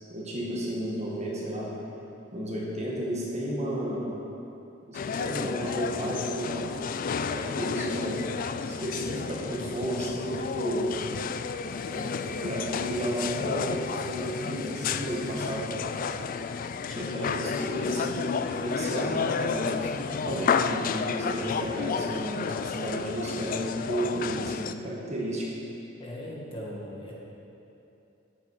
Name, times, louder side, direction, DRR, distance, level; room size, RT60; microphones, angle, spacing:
voice 1, 0.1-1.7 2.3-4.1 4.9-6.8 7.3-8.3 8.6-10.9 11.9-15.7 16.9-25.5, equal, 35° right, -4 dB, 2.0 m, -32 dB
sound 1, 4.9-24.7, left 6 dB, 45° left, 0.3 m, -31 dB
voice 2, 26.0-27.1, equal, 30° left, -4 dB, 1.9 m, -39 dB
13.0 x 8.5 x 4.9 m, 2.9 s
head